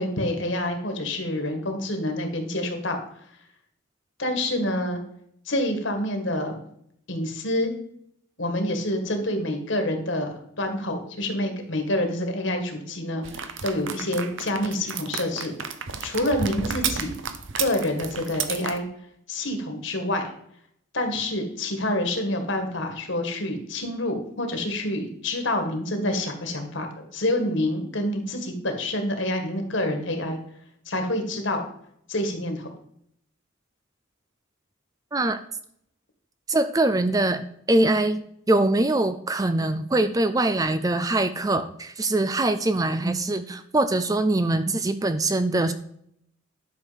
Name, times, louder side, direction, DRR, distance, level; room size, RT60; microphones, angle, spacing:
voice 1, 0.0-3.0 4.2-5.0 5.5-6.6 7.1-7.7 8.4-15.5 16.0-17.1 17.6-18.9 19.3-20.3 20.9-30.4 30.9-31.6 32.1-32.7, left 1 dB, 60° left, 5 dB, 2.0 m, -27 dB
sound 1, 13.2-18.8, right 6 dB, 60° right, 0.9 m, -32 dB
voice 2, 36.5-37.4 37.7-45.7, right 2 dB, 15° right, 11 dB, 0.4 m, -23 dB
11.5 x 6.5 x 5.2 m, 0.70 s
head